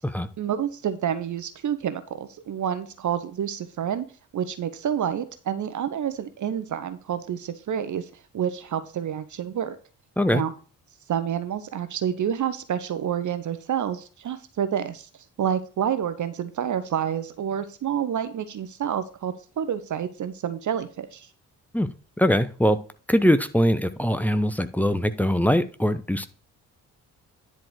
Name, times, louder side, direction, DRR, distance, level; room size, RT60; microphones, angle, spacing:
voice 1, 0.4-4.1 4.3-9.8 10.3-10.5 11.1-15.1 15.4-21.3, right 9 dB, 40° right, 12 dB, 0.9 m, -28 dB
voice 2, 22.2-22.8 23.1-26.3, equal, 5° left, 10 dB, 0.8 m, -22 dB
10.5 x 4.5 x 4.8 m, 0.37 s
figure-of-eight pair, 40°, 45 cm